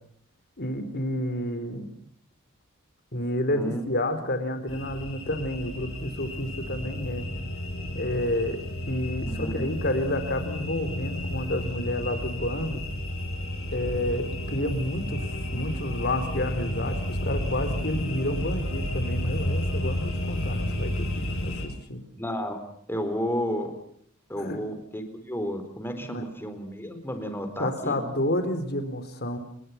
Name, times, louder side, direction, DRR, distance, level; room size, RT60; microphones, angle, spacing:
voice 1, 0.6-1.9 3.1-7.3 7.9-8.6 8.9-12.8 13.7-22.0 24.4-24.6 26.0-26.2 27.6-29.4, left 1 dB, 50° left, 9 dB, 4.0 m, -30 dB
voice 2, 3.5-3.9 9.2-9.6 22.2-22.6 22.9-23.7 24.3-28.0, equal, 10° left, 7 dB, 4.3 m, -32 dB
sound 1, 4.7-21.7, left 1 dB, 65° left, 7.4 m, -31 dB
29.5 x 20.5 x 5.9 m, 0.65 s
head